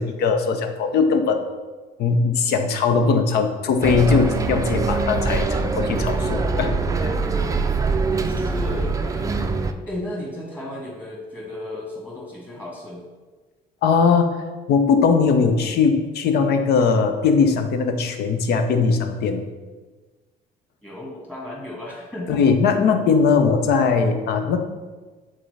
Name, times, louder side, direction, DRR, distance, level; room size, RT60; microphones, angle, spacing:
voice 1, 0.0-1.4 2.0-6.7 7.0-7.1 13.8-14.3 14.7-19.4 22.3-24.6, left 5 dB, 70° left, 7 dB, 0.7 m, -20 dB
Bus, 3.8-9.7, right 4 dB, 20° right, 0.4 m, -23 dB
voice 2, 8.3-9.5 9.9-13.0 20.8-22.4, left 1 dB, 10° left, -5 dB, 1.8 m, -34 dB
7.6 x 3.8 x 3.3 m, 1.3 s
cardioid pair, 110°, 17 cm